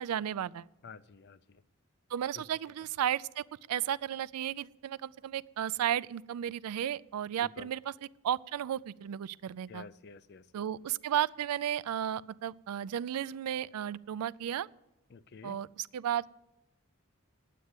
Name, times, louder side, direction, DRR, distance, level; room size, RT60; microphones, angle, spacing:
voice 1, 0.0-0.7 2.1-7.9 8.2-9.8 10.5-14.7 15.4-16.4, right 10 dB, 85° right, 20 dB, 0.3 m, -34 dB
voice 2, 0.8-1.6 2.3-2.5 7.4-7.7 9.7-10.5 15.1-15.6, left 4 dB, 50° left, 16 dB, 0.4 m, -50 dB
9.3 x 8.4 x 9.5 m, 0.93 s
head